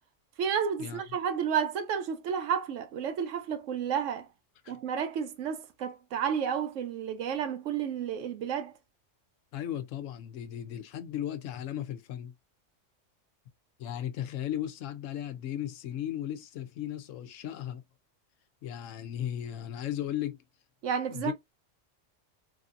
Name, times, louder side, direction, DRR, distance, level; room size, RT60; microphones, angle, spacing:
voice 1, 0.4-4.3 4.7-8.7 20.8-21.3, right 7 dB, 80° right, 1.0 m, -31 dB
voice 2, 9.5-12.3 13.8-17.8 18.6-20.4 21.1-21.3, left 11 dB, 85° left, 1.0 m, -36 dB
3.2 x 2.7 x 2.4 m
omnidirectional pair, 1.3 m